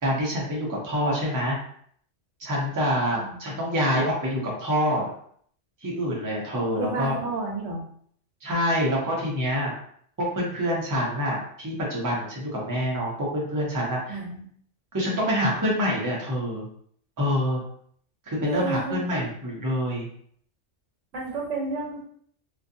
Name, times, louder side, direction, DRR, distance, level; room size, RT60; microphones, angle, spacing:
voice 1, 0.0-1.6 2.4-5.1 5.8-7.2 8.4-9.7 10.2-14.2 14.9-16.7 17.2-17.6 18.3-20.1, equal, 25° right, -4 dB, 0.5 m, -26 dB
voice 2, 6.8-7.8 14.1-14.4 18.4-19.3 21.1-22.1, right 3 dB, 85° right, -1 dB, 1.1 m, -31 dB
2.4 x 2.3 x 2.6 m, 0.62 s
omnidirectional pair, 1.2 m